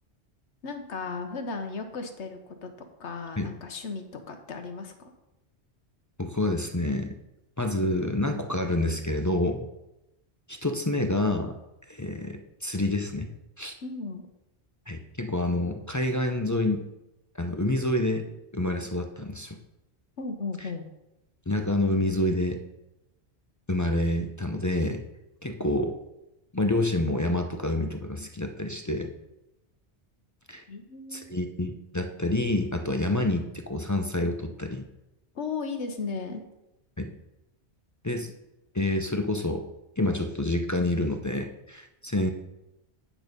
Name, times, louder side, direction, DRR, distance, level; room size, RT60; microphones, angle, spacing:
voice 1, 0.6-2.7 3.0-5.1 13.8-14.3 20.2-20.8 30.7-31.4 35.3-36.4, left 4 dB, 80° left, 6 dB, 1.4 m, -35 dB
voice 2, 6.2-7.2 7.6-9.7 10.5-11.6 11.9-13.3 13.6-13.7 14.9-16.8 17.4-18.2 18.5-19.6 21.5-22.6 23.7-25.0 25.4-26.0 26.5-29.1 30.5-30.6 31.1-34.8 37.0-37.1 38.0-38.3 38.7-39.7 40.0-42.3, left 1 dB, 20° left, 4 dB, 0.5 m, -28 dB
9.0 x 6.3 x 5.2 m, 0.93 s
omnidirectional pair, 1.2 m